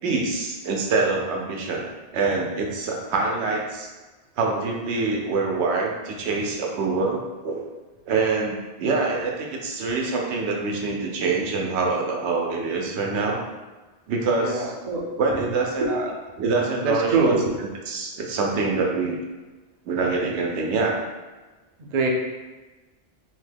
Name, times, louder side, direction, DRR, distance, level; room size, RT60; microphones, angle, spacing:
voice 1, 0.0-1.9 2.1-3.9 4.4-7.6 8.1-13.4 14.1-14.7 15.2-15.9 16.4-17.3 17.9-19.2 19.9-21.0, right 3 dB, 85° right, 0 dB, 0.9 m, -25 dB
voice 2, 14.4-15.4 15.8-16.1 16.8-17.6 21.8-22.1, right 3 dB, 55° right, 0 dB, 0.5 m, -24 dB
3.0 x 2.1 x 3.3 m, 1.2 s
omnidirectional pair, 1.1 m